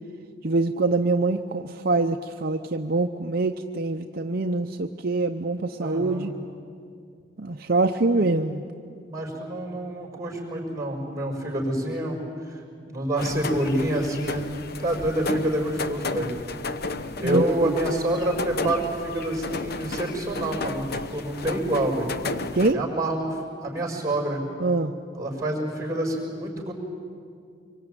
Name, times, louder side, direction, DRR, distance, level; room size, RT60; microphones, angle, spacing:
voice 1, 0.4-6.3 7.4-8.6 17.2-17.7 22.5-22.8 24.6-24.9, right 3 dB, 50° right, 5 dB, 0.7 m, -24 dB
voice 2, 5.8-6.3 8.1-8.2 9.1-12.6 12.9-14.5 14.8-16.3 17.2-22.1 22.7-24.4 25.1-26.7, right 1 dB, 15° right, 1 dB, 5.7 m, -27 dB
sound 1, 13.2-22.7, left 3 dB, 55° left, 0.9 m, -33 dB
25.0 x 24.0 x 9.1 m, 2.3 s
head